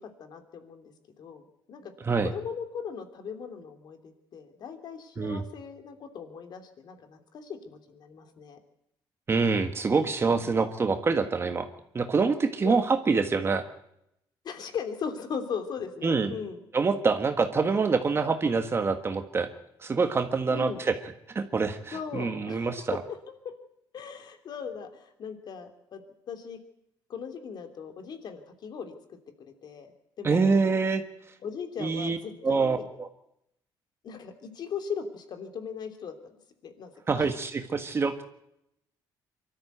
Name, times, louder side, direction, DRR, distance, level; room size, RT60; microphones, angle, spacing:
voice 1, 0.0-1.4 1.7-1.9 2.2-8.6 12.6-12.7 14.4-16.6 20.5-20.8 21.9-22.8 23.9-26.6 27.1-30.6 31.4-32.9 34.0-37.3, left 6 dB, 55° left, 7 dB, 3.1 m, -39 dB
voice 2, 9.3-11.7 11.9-13.6 16.0-16.3 16.7-19.5 19.8-20.9 21.3-23.0 30.2-31.0 31.8-32.2 32.4-33.1 37.1-38.2, right 4 dB, 30° right, 7 dB, 1.6 m, -26 dB
24.0 x 13.5 x 8.1 m, 0.79 s
cardioid pair, 130°, 9 cm